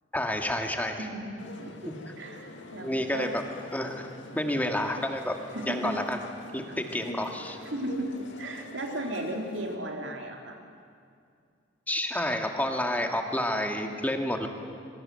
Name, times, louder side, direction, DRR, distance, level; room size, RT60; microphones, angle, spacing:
voice 1, 0.1-1.1 1.9-2.0 2.8-3.4 3.7-4.1 4.3-5.3 5.7-6.2 6.5-7.6 11.9-14.5, left 1 dB, 10° left, 4 dB, 2.1 m, -29 dB
voice 2, 1.0-1.3 1.6-1.7 2.2-3.3 5.5-6.0 6.7-6.8 7.6-10.6, right 1 dB, 70° right, 2 dB, 3.4 m, -35 dB
sound 1, 1.4-9.8, left 2 dB, 70° left, 2.4 m, -45 dB
26.0 x 23.5 x 7.8 m, 2.3 s
head